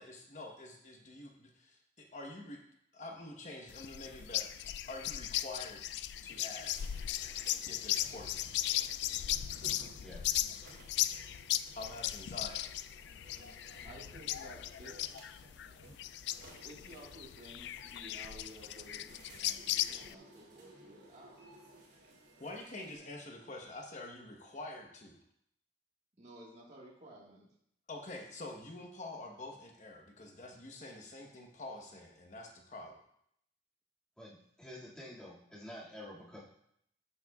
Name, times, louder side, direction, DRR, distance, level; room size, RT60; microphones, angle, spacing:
voice 1, 0.0-2.6 2.9-5.8 6.2-6.9 7.7-8.5 11.8-12.7 22.4-25.2 27.9-33.0, left 2 dB, 45° left, 2 dB, 1.1 m, -47 dB
sound 1, 3.7-20.2, left 13 dB, 70° left, 0.3 m, -37 dB
sound 2, 6.4-23.0, right 1 dB, 75° right, 2.7 m, -58 dB
voice 2, 10.0-10.3 34.2-36.4, left 1 dB, 5° left, -8 dB, 2.1 m, -49 dB
voice 3, 13.8-15.1 16.6-21.4 26.2-27.5, right 1 dB, 40° right, -4 dB, 1.6 m, -54 dB
12.5 x 7.7 x 2.4 m, 0.72 s
head